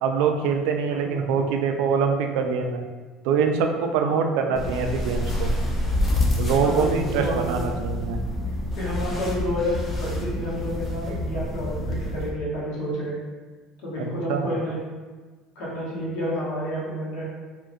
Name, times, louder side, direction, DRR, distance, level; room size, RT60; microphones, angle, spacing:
voice 1, 0.0-2.8 3.2-5.5 6.4-8.2 14.0-14.5, right 6 dB, 80° right, 4 dB, 0.3 m, -24 dB
voice 2, 0.9-1.5 4.0-4.5 6.6-7.6 8.7-13.2 13.8-14.8 15.5-17.2, equal, 70° left, -7 dB, 1.1 m, -30 dB
sound 1, 4.6-12.3, left 1 dB, 20° left, 0.5 m, -27 dB
2.8 x 2.4 x 2.6 m, 1.4 s
cardioid pair, 150°, 0 cm